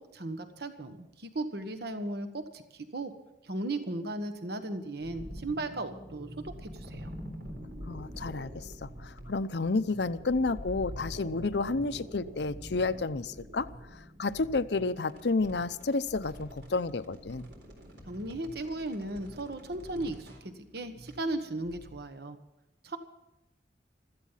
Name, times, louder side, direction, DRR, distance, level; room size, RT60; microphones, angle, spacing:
voice 1, 0.0-3.1 3.4-7.1 18.1-22.4 22.8-23.0, right 2 dB, 65° right, 8 dB, 1.3 m, -36 dB
sound 1, 5.0-22.0, equal, 80° right, 3.9 m, -46 dB
voice 2, 7.9-17.5, left 3 dB, 70° left, 13 dB, 0.7 m, -31 dB
16.0 x 14.0 x 5.7 m, 0.89 s
head